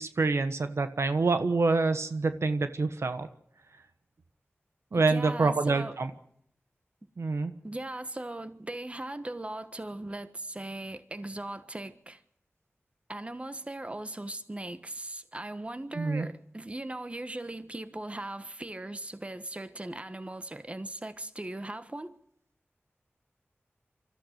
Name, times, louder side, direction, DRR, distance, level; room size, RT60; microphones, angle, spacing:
voice 1, 0.0-3.3 4.9-6.1 7.2-7.5 16.0-16.3, right 3 dB, 85° right, 1.3 m, -26 dB
voice 2, 4.9-6.0 7.6-12.2 13.1-22.2, right 1 dB, 25° right, 1.3 m, -39 dB
25.0 x 14.0 x 8.0 m
wide cardioid pair, 65°, 5 cm